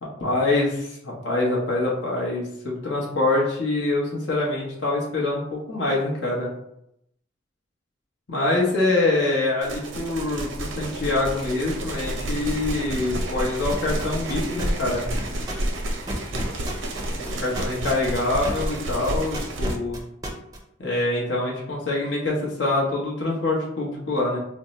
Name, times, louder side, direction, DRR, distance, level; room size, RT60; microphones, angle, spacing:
voice 1, 0.0-6.5 8.3-15.0 17.1-20.0 20.8-24.4, left 2 dB, 80° left, -4 dB, 0.8 m, -25 dB
sound 1, 9.6-19.8, right 1 dB, 85° right, 0.5 m, -30 dB
sound 2, 13.7-18.8 19.0-20.6, right 1 dB, 20° right, 0.4 m, -32 dB
2.6 x 2.1 x 3.9 m, 0.77 s
head